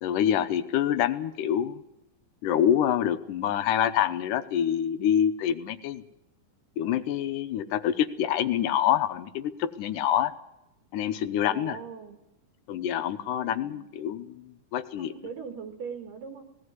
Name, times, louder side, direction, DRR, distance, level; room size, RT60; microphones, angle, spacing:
voice 1, 0.0-1.8 2.4-6.0 6.8-10.3 10.9-11.8 12.7-15.1, left 10 dB, 80° left, 11 dB, 2.4 m, -26 dB
voice 2, 11.5-12.2 13.4-13.9 15.0-16.4, right 6 dB, 85° right, 6 dB, 3.7 m, -40 dB
18.0 x 17.0 x 9.6 m, 0.86 s
omnidirectional pair, 3.7 m